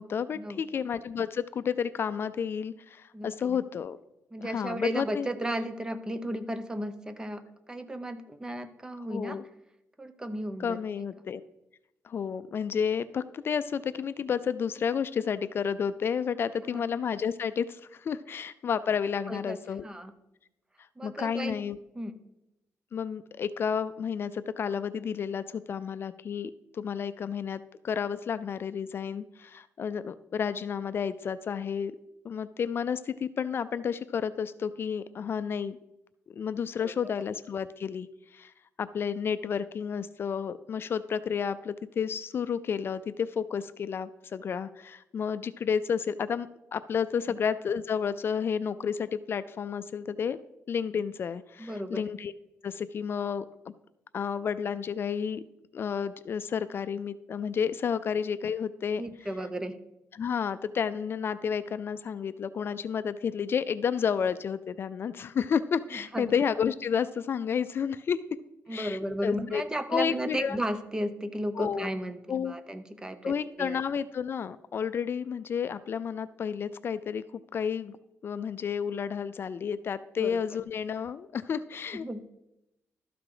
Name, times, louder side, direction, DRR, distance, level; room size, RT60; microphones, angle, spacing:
voice 1, 0.0-4.0 4.4-5.3 9.1-9.4 10.6-11.4 12.0-19.8 21.0-21.8 22.9-31.9 32.2-35.8 36.3-38.1 38.3-38.5 38.8-50.4 50.7-52.3 52.6-53.4 54.1-55.4 55.7-59.0 60.1-68.2 68.7-69.6 69.9-70.6 71.6-71.9 72.3-72.6 73.2-77.2 77.5-78.0 78.2-82.1, left 7 dB, 50° left, 13 dB, 0.4 m, -31 dB
voice 2, 3.1-3.6 4.3-9.4 10.0-10.8 16.7-16.8 19.3-19.6 19.8-20.1 21.0-21.6 21.9-22.1 36.8-37.1 51.6-52.0 59.0-59.7 65.9-66.3 68.7-73.8 80.2-80.4 81.9-82.3, right 1 dB, 15° right, 10 dB, 0.7 m, -34 dB
12.5 x 5.9 x 4.9 m, 0.88 s
cardioid pair, 125°, 5 cm